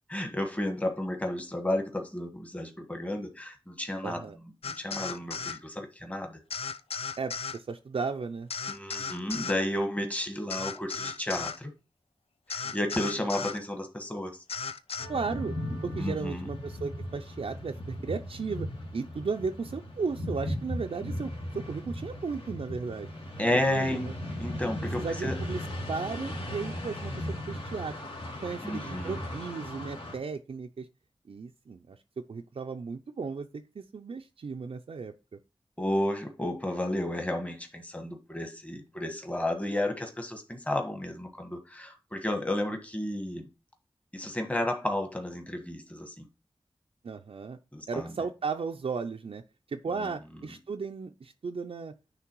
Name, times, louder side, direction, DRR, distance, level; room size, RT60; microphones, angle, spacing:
voice 1, 0.1-4.2 4.6-6.4 8.7-11.7 12.5-14.4 16.0-16.5 23.4-24.1 24.4-25.4 28.6-29.2 35.8-43.5 44.1-46.3 47.7-48.1 49.9-50.1, left 1 dB, 15° left, 1.4 m, -32 dB
voice 2, 4.0-4.4 7.2-8.5 12.6-12.8 15.1-15.6 15.8-18.7 18.9-23.1 23.7-24.1 25.0-25.6 25.9-28.0 28.4-30.9 31.3-35.1 47.0-47.6 47.9-49.4 49.7-51.9, right 5 dB, 75° right, 0.5 m, -35 dB
sound 1, 4.6-5.6 6.5-7.6 8.5-9.6 10.5-11.6 12.5-13.6 14.5-15.1, left 6 dB, 85° left, 0.5 m, -35 dB
sound 2, 15.0-30.1, left 1 dB, 70° left, 2.5 m, -37 dB
9.7 x 3.4 x 4.6 m
wide cardioid pair, 90°, 10 cm